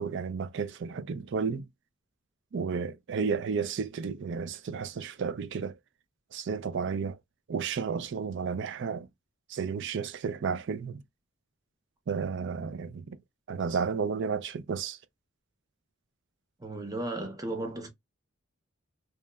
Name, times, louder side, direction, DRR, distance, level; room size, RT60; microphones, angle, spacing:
voice 1, 0.0-1.7 2.5-5.8 6.3-7.2 7.5-9.1 9.5-11.0 12.1-13.2 13.5-15.0, right 5 dB, 55° right, 0.4 m, -32 dB
voice 2, 16.6-17.9, right 2 dB, 15° right, 0.6 m, -35 dB
2.8 x 2.1 x 2.2 m
head